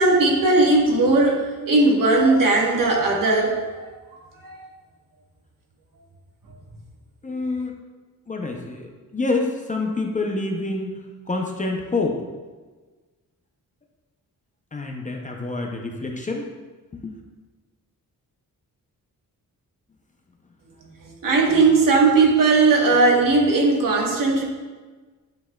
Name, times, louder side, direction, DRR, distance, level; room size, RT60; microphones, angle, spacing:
voice 1, 0.0-3.9 4.4-4.7 21.0-24.4, right 3 dB, 70° right, -1 dB, 1.2 m, -18 dB
voice 2, 7.2-7.8 8.3-12.2 14.7-16.5 16.9-17.2, left 3 dB, 25° left, 1 dB, 0.5 m, -27 dB
8.7 x 5.7 x 2.2 m, 1.3 s
wide cardioid pair, 180°, 35 cm